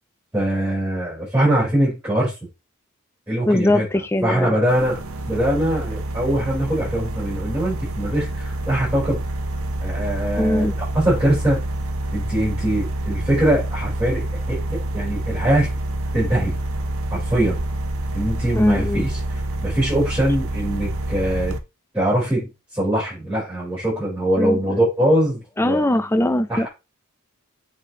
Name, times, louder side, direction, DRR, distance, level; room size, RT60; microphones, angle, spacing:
voice 1, 0.3-2.3 3.3-3.9 4.2-5.0 5.3-9.2 9.8-10.7 10.9-11.6 12.1-15.7 16.1-16.6 17.1-17.6 18.1-19.2 19.6-21.5 21.9-25.8 26.5-26.7, right 1 dB, 10° right, 4.1 m, -22 dB
voice 2, 3.5-4.6 10.4-10.7 18.5-19.1 24.4-24.8 25.6-26.7, left 1 dB, 10° left, 0.5 m, -21 dB
sound 1, 4.7-21.6, right 1 dB, 75° right, 0.8 m, -27 dB
7.8 x 4.1 x 3.0 m
head